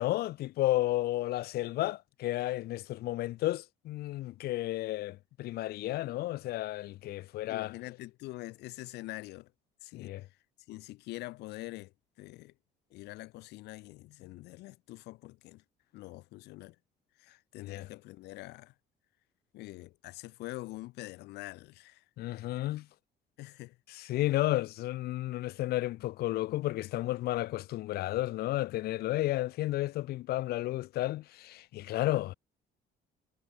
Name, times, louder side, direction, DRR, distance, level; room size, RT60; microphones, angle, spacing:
voice 1, 0.0-7.7 9.9-10.2 17.6-17.9 22.2-22.9 24.0-32.3, left 16 dB, 70° left, 0.6 m, -32 dB
voice 2, 7.5-9.5 9.8-10.4 10.7-12.5 12.9-15.6 15.9-16.8 17.2-18.7 19.5-22.0 23.4-23.8, left 19 dB, 85° left, 1.3 m, -45 dB
cardioid pair, 110°, 17 cm